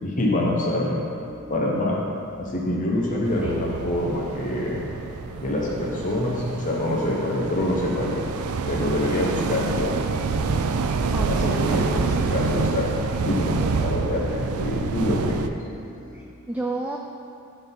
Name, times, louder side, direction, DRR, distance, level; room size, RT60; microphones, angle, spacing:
voice 1, 0.0-1.0 1.5-2.0 2.4-4.8 5.4-8.2 8.7-10.0 11.3-15.5, left 1 dB, 35° left, -3 dB, 0.8 m, -26 dB
sound 1, 1.1-16.2, equal, 35° right, 1.4 m, -45 dB
voice 2, 2.9-3.7 11.1-11.9 16.1-17.0, right 2 dB, 5° right, 0 dB, 0.3 m, -32 dB
sound 2, 3.2-15.5, right 4 dB, 70° right, 0.4 m, -27 dB
9.5 x 4.1 x 5.3 m, 2.5 s
head